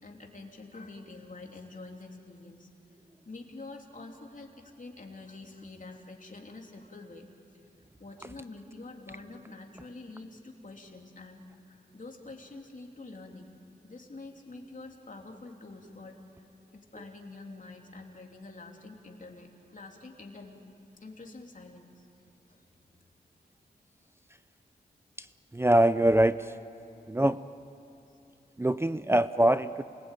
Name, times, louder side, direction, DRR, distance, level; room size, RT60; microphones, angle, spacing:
voice 1, 0.0-2.7 3.2-7.2 7.5-7.6 8.0-11.4 11.7-13.6 13.8-16.4 16.7-20.5 21.0-22.1 22.5-22.6 28.1-28.2, left 3 dB, 50° left, 1 dB, 3.2 m, -46 dB
voice 2, 25.5-26.6 27.1-27.4 28.6-29.8, right 1 dB, 15° right, 13 dB, 0.5 m, -23 dB
28.0 x 20.0 x 9.2 m, 2.9 s
wide cardioid pair, 70°, 18 cm